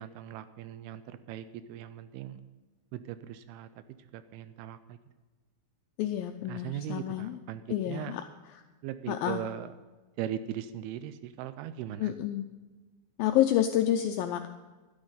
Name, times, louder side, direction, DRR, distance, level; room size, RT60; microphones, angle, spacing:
voice 1, 0.0-2.4 2.9-3.7 4.1-5.0 6.5-8.1 8.8-9.7 10.2-12.1, right 11 dB, 80° right, 13 dB, 2.4 m, -39 dB
voice 2, 6.0-7.4 7.7-8.2 8.5-8.6 9.1-9.4 12.0-12.5 13.2-14.5, left 12 dB, 85° left, 6 dB, 2.0 m, -29 dB
12.5 x 11.5 x 5.6 m, 1.3 s
omnidirectional pair, 4.7 m